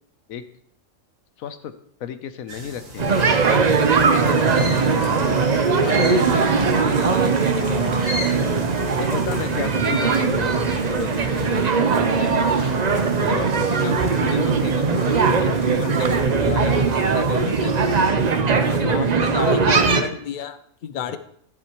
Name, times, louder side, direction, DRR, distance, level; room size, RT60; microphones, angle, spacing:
voice 1, 1.4-1.7 2.0-3.3 3.9-5.4 5.6-8.2 9.0-12.7 13.2-18.0 18.6-19.6 21.1-21.2, left 8 dB, 90° left, 11 dB, 1.2 m, -33 dB
sound 1, 2.5-18.1, right 1 dB, 75° right, 2.9 m, -38 dB
Livestock farm animals working animals, 2.9-16.2, right 1 dB, 25° right, 1.2 m, -40 dB
sound 2, 3.0-20.0, right 5 dB, 40° right, 0.6 m, -20 dB
voice 2, 18.9-21.2, left 8 dB, 55° left, 11 dB, 0.5 m, -31 dB
12.5 x 7.8 x 3.0 m, 0.67 s
omnidirectional pair, 1.4 m